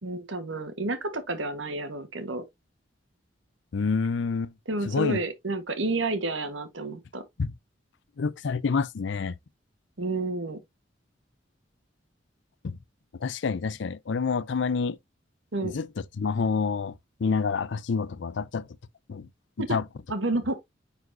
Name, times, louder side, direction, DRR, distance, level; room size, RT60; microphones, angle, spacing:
voice 1, 0.0-2.4 4.6-7.2 10.0-10.6 15.5-15.8 19.6-19.7 20.1-20.6, right 2 dB, 85° right, 1.4 m, -30 dB
voice 2, 3.7-4.5 4.9-5.2 7.4-7.5 8.2-9.3 12.6-12.7 13.2-15.0 15.6-15.9 16.2-16.9 17.2-18.6 19.1-19.3 19.7-19.8, left 5 dB, 65° left, 0.5 m, -27 dB
9.4 x 4.1 x 2.6 m
head